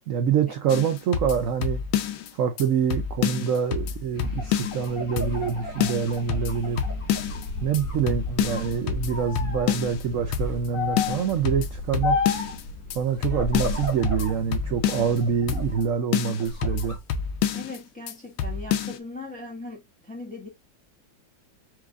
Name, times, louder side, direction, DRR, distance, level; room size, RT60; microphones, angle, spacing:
voice 1, 0.1-1.8 2.3-6.8 7.6-12.2 12.9-17.0, right 7 dB, 70° right, 0.7 m, -26 dB
sound 1, 0.7-2.3 2.6-2.7 2.9-4.9 5.2-5.5 5.8-7.5 7.7-7.8 8.1-10.0 10.3-10.7 11.0-12.6 12.9-13.0 13.2-15.2 15.5-15.9 16.1-17.8 18.1-18.2 18.4-19.0, left 8 dB, 80° left, 1.3 m, -28 dB
sound 2, 4.1-15.6, left 2 dB, 50° left, 1.9 m, -39 dB
sound 3, 4.2-7.4 7.8-8.7 9.1-9.7 10.7-11.3 12.0-12.6 13.3-14.4 14.8-15.8 16.3-17.0, left 4 dB, 30° left, 1.2 m, -32 dB
voice 2, 17.5-20.5, left 2 dB, 5° left, 0.8 m, -39 dB
4.8 x 2.4 x 3.6 m
omnidirectional pair, 2.0 m